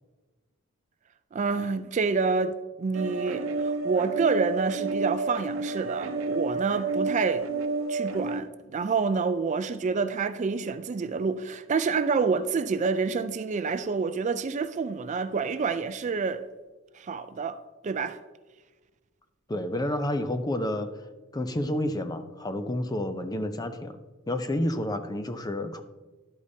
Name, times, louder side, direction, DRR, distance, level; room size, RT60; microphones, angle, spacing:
voice 1, 1.3-7.5 7.9-16.4 16.9-17.6 17.8-18.2, right 4 dB, 35° right, 0.3 m, -28 dB
sound 1, 2.9-8.4, right 3 dB, 65° right, 0.8 m, -30 dB
voice 2, 19.5-20.9 21.3-24.0 24.3-25.8, left 1 dB, 20° left, 0.5 m, -29 dB
11.0 x 8.4 x 2.7 m
head